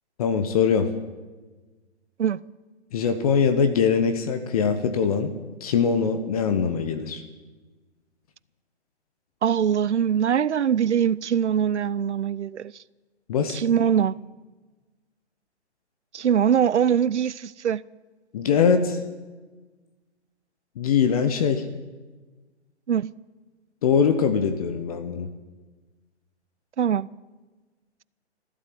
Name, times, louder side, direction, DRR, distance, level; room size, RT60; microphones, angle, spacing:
voice 1, 0.2-0.9 2.9-5.3 5.6-7.2 13.3-13.6 18.3-19.0 20.8-21.6 23.8-25.3, left 6 dB, 35° left, 1.0 m, -22 dB
voice 2, 9.4-12.7 13.5-14.2 16.1-17.8 22.9-23.1 26.8-27.1, right 8 dB, 85° right, 0.6 m, -22 dB
15.0 x 12.5 x 7.7 m
hypercardioid pair, 145°, 34 cm